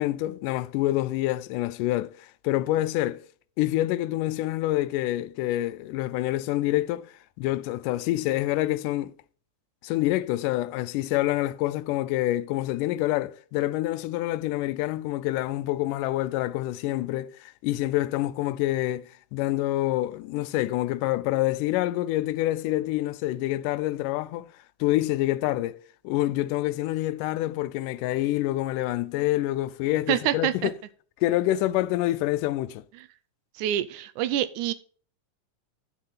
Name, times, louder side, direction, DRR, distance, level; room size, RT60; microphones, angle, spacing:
voice 1, 0.0-3.2 3.6-7.1 7.4-9.1 9.8-24.5 24.8-30.7 31.2-32.8, left 16 dB, 85° left, 2.1 m, -27 dB
voice 2, 30.1-30.7 33.6-34.7, right 12 dB, 80° right, 2.0 m, -26 dB
8.9 x 6.5 x 5.6 m
omnidirectional pair, 3.7 m